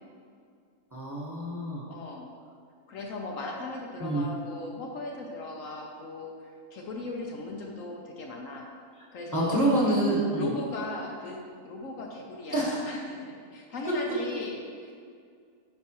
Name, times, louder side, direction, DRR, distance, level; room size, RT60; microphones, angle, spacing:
voice 1, 0.9-1.8 4.0-4.2 9.3-10.5 12.5-12.8, right 1 dB, 15° right, -6 dB, 1.2 m, -26 dB
voice 2, 1.9-2.3 2.9-8.7 9.1-9.9 10.4-14.9, left 2 dB, 65° left, 0 dB, 1.1 m, -38 dB
8.5 x 5.8 x 3.0 m, 2.2 s
omnidirectional pair, 1.6 m